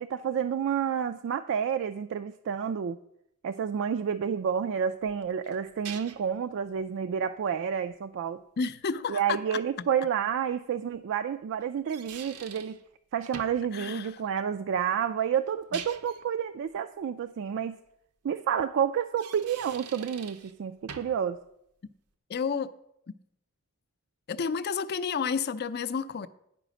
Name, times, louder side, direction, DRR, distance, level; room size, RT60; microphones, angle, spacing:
voice 1, 0.0-3.0 3.4-8.4 9.1-12.8 13.1-17.8 18.2-21.4, right 8 dB, 55° right, 9 dB, 0.3 m, -30 dB
sound 1, 5.0-6.4 9.6-9.7 11.6-12.8 13.3-13.7 15.5-16.2 19.0-20.5 20.9-21.3, right 7 dB, 90° right, 0.7 m, -44 dB
voice 2, 8.6-9.6 13.7-14.2 22.3-22.7 24.3-26.3, left 5 dB, 50° left, 14 dB, 0.5 m, -31 dB
10.0 x 4.9 x 6.2 m, 0.78 s
head